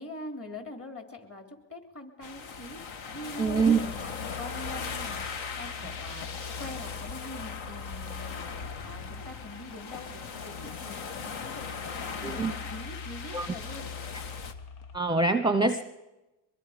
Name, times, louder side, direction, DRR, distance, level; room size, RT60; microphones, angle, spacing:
voice 1, 0.0-6.3 6.6-8.6 8.8-13.9, left 1 dB, 30° left, 4 dB, 3.4 m, -44 dB
sound 1, 2.2-14.5, left 5 dB, 70° left, 1.6 m, -39 dB
voice 2, 3.4-3.8 12.2-12.5 13.3-13.5 14.9-15.8, right 4 dB, 10° right, 9 dB, 0.8 m, -24 dB
sound 2, 3.5-15.0, left 5 dB, 85° left, 1.5 m, -44 dB
22.5 x 22.5 x 5.1 m, 1.0 s
cardioid pair, 90°, 48 cm